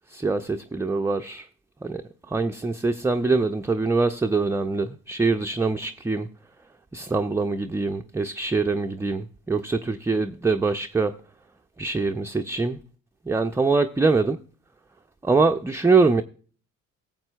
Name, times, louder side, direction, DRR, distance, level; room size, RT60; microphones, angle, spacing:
voice 1, 0.1-1.5 1.8-6.3 6.9-11.2 11.8-12.8 13.3-14.4 15.2-16.2, right 3 dB, 5° right, 0.4 m, -24 dB
18.5 x 7.4 x 2.2 m
figure-of-eight pair, 45°, 40 cm